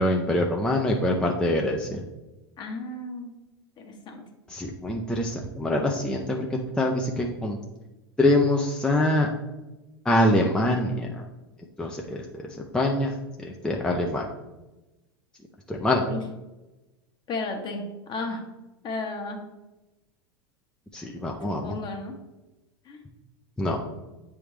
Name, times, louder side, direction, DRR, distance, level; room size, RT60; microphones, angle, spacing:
voice 1, 0.0-2.0 4.5-7.6 8.2-9.3 10.0-11.2 11.8-13.1 13.4-14.3 15.7-16.0 20.9-21.8 23.6-23.8, left 1 dB, 5° left, 0 dB, 0.7 m, -24 dB
voice 2, 2.6-3.3 3.8-4.2 16.1-16.2 17.3-18.4 18.8-19.4 21.4-22.1 22.8-23.0, left 3 dB, 35° left, 3 dB, 1.3 m, -34 dB
8.8 x 3.5 x 3.3 m, 1.1 s
hypercardioid pair, 90°, 13 cm